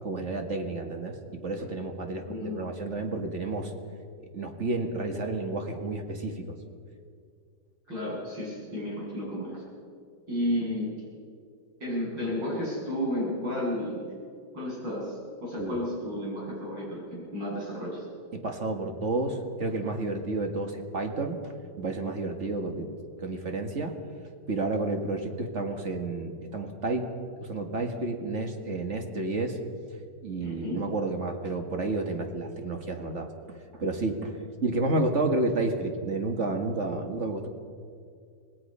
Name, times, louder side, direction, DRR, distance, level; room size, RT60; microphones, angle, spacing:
voice 1, 0.0-3.7 4.3-6.6 15.6-15.8 18.3-22.9 23.2-24.0 24.5-27.1 27.4-29.6 30.2-34.4 34.6-37.5, right 2 dB, 40° right, 4 dB, 2.0 m, -31 dB
voice 2, 2.3-2.6 7.9-9.6 10.3-10.9 11.8-14.0 14.5-18.1 30.4-30.8, left 1 dB, 80° right, -6 dB, 8.8 m, -32 dB
26.0 x 19.0 x 5.5 m, 2.3 s
omnidirectional pair, 2.0 m